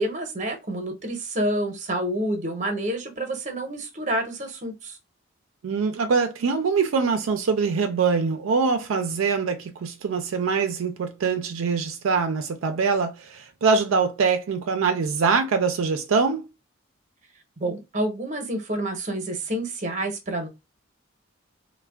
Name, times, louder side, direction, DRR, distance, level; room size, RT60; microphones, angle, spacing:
voice 1, 0.0-5.0 17.6-20.5, right 1 dB, 35° right, 0.7 m, -28 dB
voice 2, 5.6-16.4, right 5 dB, 80° right, 0.4 m, -23 dB
3.3 x 2.1 x 2.2 m
head